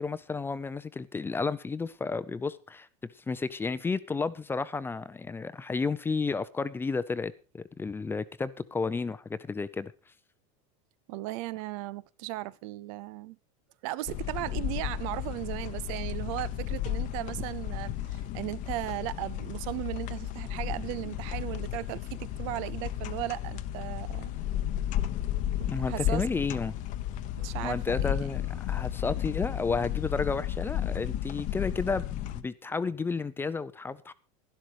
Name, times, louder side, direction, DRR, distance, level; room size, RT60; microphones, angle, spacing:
voice 1, 0.0-9.9 25.7-26.7 27.6-28.4 28.7-34.1, left 4 dB, 10° left, 0.6 m, -32 dB
voice 2, 11.1-13.4 13.8-24.3 25.6-26.2 27.4-28.3, right 17 dB, 65° right, 0.6 m, -36 dB
sound 1, 14.1-32.4, left 12 dB, 45° left, 0.9 m, -33 dB
12.0 x 12.0 x 4.9 m
supercardioid pair, 145°, 18 cm